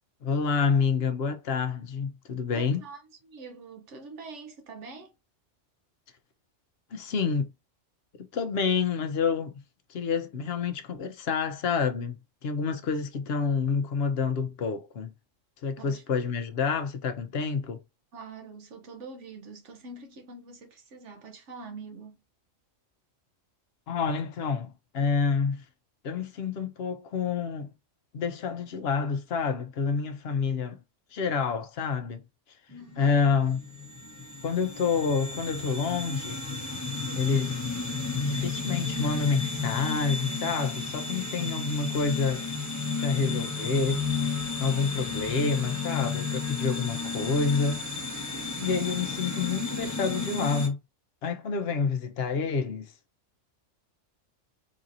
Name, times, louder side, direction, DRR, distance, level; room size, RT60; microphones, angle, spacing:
voice 1, 0.2-2.8 6.9-7.5 8.2-9.6 9.9-15.1 15.6-17.8 23.9-25.6 26.0-27.7 28.1-30.8 31.1-32.2 33.0-33.6 34.4-36.4 37.1-37.6 38.2-42.5 43.0-44.1 44.6-47.8 48.6-50.8 51.2-52.8, left 5 dB, 60° left, 0.8 m, -28 dB
voice 2, 2.5-5.1 15.8-16.0 18.1-22.2 32.7-33.2 48.6-48.9, right 4 dB, 70° right, 1.1 m, -45 dB
sound 1, 32.7-50.7, left 4 dB, 15° left, 0.8 m, -33 dB
4.0 x 2.7 x 2.5 m
omnidirectional pair, 1.3 m